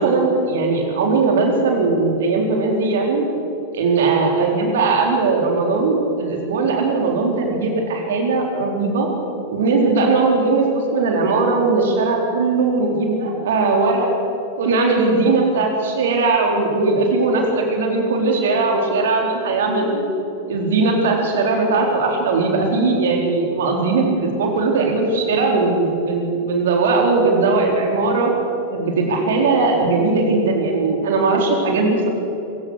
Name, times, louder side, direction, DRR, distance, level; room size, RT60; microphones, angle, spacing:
voice 1, 0.0-3.3 3.7-9.1 9.5-14.1 14.6-20.0 20.5-28.3 28.7-32.1, right 3 dB, 60° right, 2 dB, 4.3 m, -19 dB
26.5 x 16.5 x 6.6 m, 2.9 s
figure-of-eight pair, 90°, 0 cm